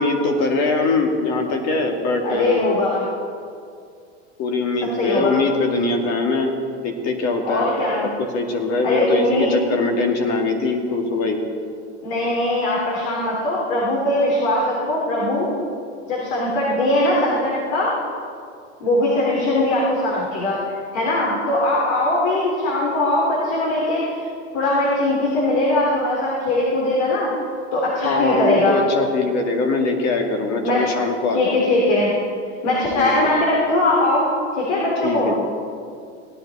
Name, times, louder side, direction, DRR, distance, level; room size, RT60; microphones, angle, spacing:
voice 1, 0.0-2.7 4.4-7.7 8.2-11.4 28.0-31.5 32.9-33.1 35.0-35.5, left 3 dB, 45° left, 3 dB, 2.2 m, -22 dB
voice 2, 2.2-3.0 5.0-5.3 7.4-8.1 8.8-9.5 12.0-15.5 16.1-17.9 18.8-20.6 20.9-24.2 24.5-27.3 27.7-28.8 30.6-30.8 31.3-32.1 32.6-35.3, left 1 dB, 70° left, -5 dB, 3.5 m, -20 dB
17.0 x 10.5 x 4.3 m, 2.3 s
hypercardioid pair, 100°, 36 cm